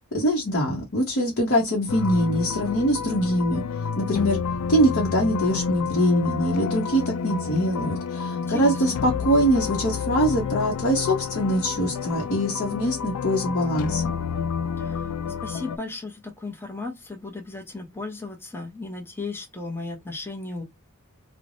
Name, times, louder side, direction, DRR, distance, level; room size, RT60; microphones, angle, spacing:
voice 1, 0.1-3.6 4.0-4.4 4.7-14.1, equal, 50° left, 0.8 m, -23 dB
sound 1, 1.9-15.8, left 6 dB, 75° left, 0.3 m, -29 dB
voice 2, 8.3-9.0 14.8-15.1 15.4-20.6, left 3 dB, 10° left, 0.6 m, -35 dB
3.2 x 2.0 x 2.5 m
head